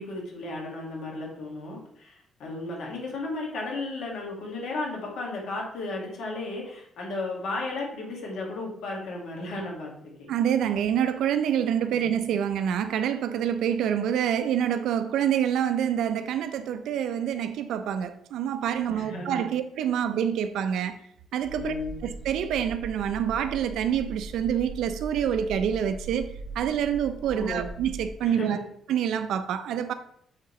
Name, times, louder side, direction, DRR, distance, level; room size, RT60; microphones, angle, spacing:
voice 1, 0.0-10.3 11.9-12.2 18.9-19.5 21.5-22.1 27.3-27.7 28.2-28.6, left 2 dB, 75° left, 1.9 m, -34 dB
voice 2, 10.3-21.0 21.3-21.7 22.0-28.6 28.9-29.9, right 9 dB, 90° right, 0.5 m, -27 dB
sound 1, 21.4-28.1, right 3 dB, 45° right, 1.1 m, -40 dB
8.1 x 3.7 x 3.1 m
cardioid pair, 170°, 0 cm